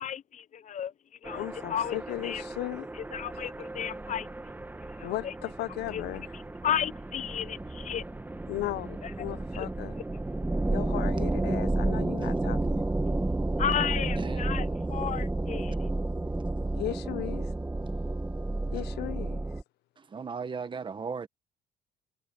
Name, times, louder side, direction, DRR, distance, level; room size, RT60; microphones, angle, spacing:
voice 1, 0.0-0.9 1.2-2.4 2.9-4.3 4.9-5.3 5.9-6.0 6.3-8.0 9.0-9.1 9.5-9.7 13.6-15.9, left 9 dB, 45° left, 0.7 m, -33 dB
sound 1, 1.2-19.6, right 2 dB, 10° right, 1.7 m, -32 dB
voice 2, 1.3-2.9 5.0-6.3 8.5-9.9 10.7-12.8 16.7-17.5 18.7-19.4, left 16 dB, 80° left, 1.0 m, -36 dB
voice 3, 14.2-14.5 20.1-21.3, right 5 dB, 30° right, 1.5 m, -36 dB
cardioid pair, 110°, 17 cm